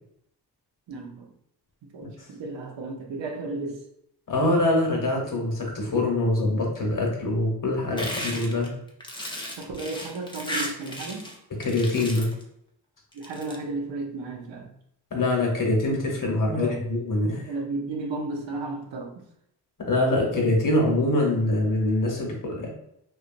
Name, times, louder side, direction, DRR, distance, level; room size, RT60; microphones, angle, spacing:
voice 1, 0.9-1.3 1.8-3.8 9.6-11.3 13.1-14.7 16.5-16.8 17.4-19.1, right 3 dB, 90° right, 1 dB, 0.7 m, -34 dB
voice 2, 4.3-8.7 11.6-12.3 15.1-17.5 19.8-22.7, left 2 dB, 50° left, -1 dB, 1.0 m, -24 dB
sound 1, 8.0-11.4 11.6-12.4 13.1-13.6, left 1 dB, 10° left, 0.5 m, -34 dB
2.8 x 2.3 x 2.4 m, 0.75 s
wide cardioid pair, 85°, 43 cm